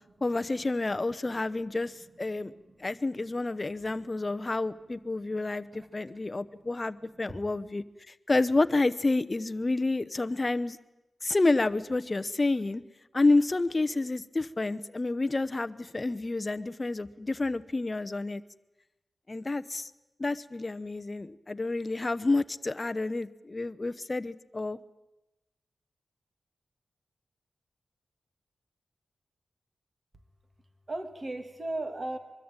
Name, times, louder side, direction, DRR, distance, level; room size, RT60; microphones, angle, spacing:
voice 1, 0.2-2.5 2.8-10.8 11.2-12.8 13.1-18.4 19.3-19.9 20.2-24.8, left 2 dB, 25° left, 12 dB, 0.9 m, -29 dB
voice 2, 2.3-2.8 5.2-6.4 7.2-7.4 30.9-32.2, right 2 dB, 30° right, 8 dB, 2.4 m, -39 dB
23.5 x 23.0 x 9.0 m, 0.98 s
wide cardioid pair, 145°, 0 cm